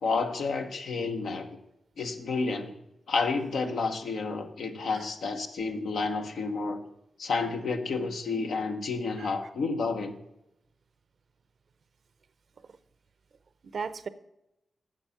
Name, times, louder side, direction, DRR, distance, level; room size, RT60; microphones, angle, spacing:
voice 1, 0.0-1.5 2.0-2.8 3.1-6.8 7.2-10.2, left 4 dB, 85° left, 4 dB, 1.0 m, -30 dB
voice 2, 13.6-14.1, right 5 dB, 70° right, 14 dB, 0.6 m, -37 dB
9.0 x 7.5 x 5.7 m, 0.86 s
cardioid pair, 55°, 0 cm